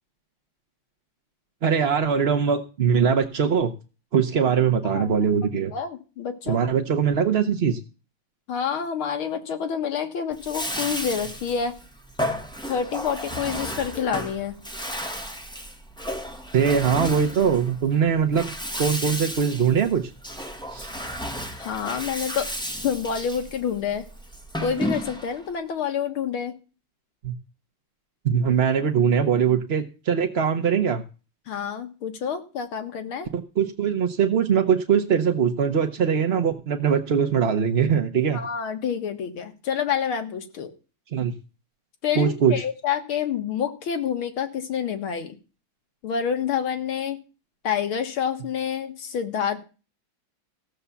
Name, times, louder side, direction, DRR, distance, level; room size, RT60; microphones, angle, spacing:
voice 1, 1.6-3.7 4.1-5.7 6.5-7.8 16.5-18.5 18.8-20.0 20.7-20.9 27.2-27.3 28.2-31.0 33.3-38.4 41.1-41.4 42.2-42.5, right 7 dB, 55° right, 7 dB, 0.7 m, -21 dB
voice 2, 4.8-5.3 5.7-6.7 8.5-11.8 12.7-14.5 21.6-22.5 22.8-24.1 24.6-26.5 31.5-33.3 38.3-40.7 42.0-45.4 46.0-47.2 47.6-49.6, left 7 dB, 80° left, 7 dB, 2.4 m, -28 dB
Bathtub (filling or washing), 10.3-25.5, equal, 5° left, 1.2 m, -33 dB
15.0 x 7.1 x 6.9 m, 0.34 s
omnidirectional pair, 2.3 m